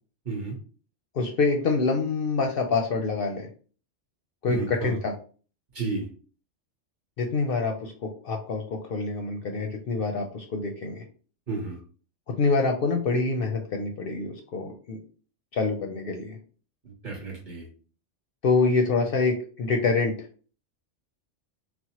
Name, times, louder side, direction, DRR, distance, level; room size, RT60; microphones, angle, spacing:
voice 1, 0.2-0.6 4.5-4.9 5.7-6.1 11.5-11.8 16.8-17.7, right 4 dB, 45° right, -1 dB, 1.0 m, -32 dB
voice 2, 1.1-3.5 4.4-5.1 7.2-11.0 12.3-15.0 15.5-16.4 18.4-20.1, left 4 dB, 60° left, 2 dB, 0.7 m, -26 dB
4.2 x 2.0 x 2.8 m, 0.39 s
omnidirectional pair, 1.2 m